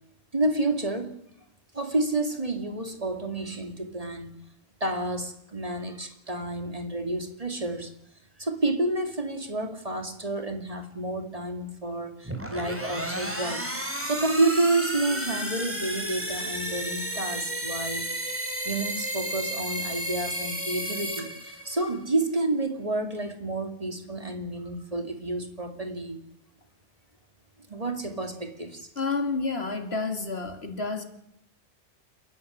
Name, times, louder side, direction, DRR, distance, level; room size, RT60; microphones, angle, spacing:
voice 1, 0.3-1.2 1.7-4.4 4.8-7.9 8.4-13.6 14.0-26.2 27.7-28.9, right 2 dB, 30° right, 7 dB, 2.4 m, -29 dB
sound 1, 12.2-22.0, equal, 10° right, 3.7 m, -32 dB
voice 2, 29.0-31.0, left 3 dB, 60° left, 7 dB, 2.6 m, -29 dB
29.0 x 11.0 x 9.8 m, 0.78 s
omnidirectional pair, 1.2 m